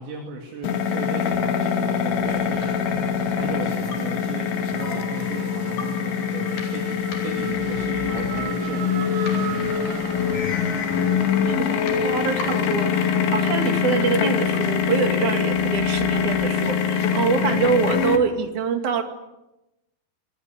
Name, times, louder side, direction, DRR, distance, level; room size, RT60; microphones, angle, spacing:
voice 1, 0.0-9.8, right 4 dB, 70° right, 2 dB, 4.7 m, -36 dB
sound 1, 0.6-18.2, left 7 dB, 75° left, 4.4 m, -24 dB
Race car auto racing / Accelerating revving vroom, 1.5-18.3, right 7 dB, 85° right, 4.5 m, -40 dB
sound 2, 2.1-18.3, left 3 dB, 50° left, 5.4 m, -39 dB
voice 2, 11.5-19.0, right 5 dB, 45° right, 6 dB, 3.1 m, -25 dB
26.5 x 19.0 x 9.7 m, 0.96 s
omnidirectional pair, 5.5 m